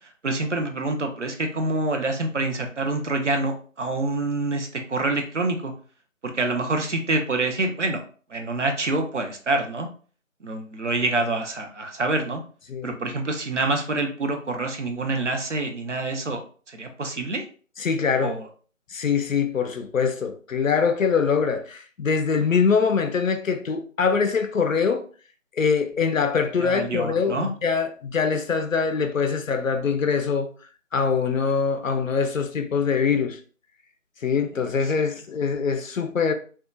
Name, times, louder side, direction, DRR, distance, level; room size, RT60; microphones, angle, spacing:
voice 1, 0.2-5.7 6.2-8.0 8.3-9.9 10.4-12.4 12.8-16.4 16.7-17.4 18.2-18.5 26.6-27.5, right 2 dB, 65° right, 0.5 m, -26 dB
voice 2, 17.8-18.3 18.9-25.1 25.6-30.5 30.9-33.4 34.2-36.3, left 5 dB, 75° left, 0.5 m, -23 dB
2.7 x 2.2 x 2.3 m
figure-of-eight pair, 170°, 40 cm